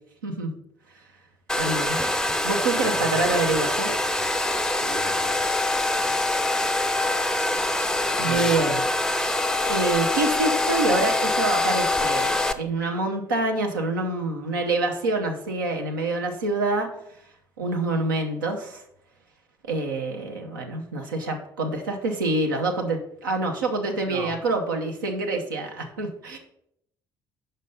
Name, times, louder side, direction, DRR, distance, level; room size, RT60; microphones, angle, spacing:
voice 1, 0.2-0.5 1.6-2.0 2.4-4.0 6.1-6.2 8.2-8.9 9.6-16.9 17.6-18.8 19.6-26.4, right 2 dB, 75° right, 3 dB, 0.7 m, -26 dB
Domestic sounds home sounds, 1.5-12.5, left 2 dB, 5° left, 0.4 m, -24 dB
voice 2, 2.8-3.5 4.8-5.5 7.6-7.8 8.2-8.6 24.1-24.4, right 5 dB, 45° right, 6 dB, 0.9 m, -38 dB
5.5 x 5.1 x 5.4 m, 0.75 s
figure-of-eight pair, 50°, 11 cm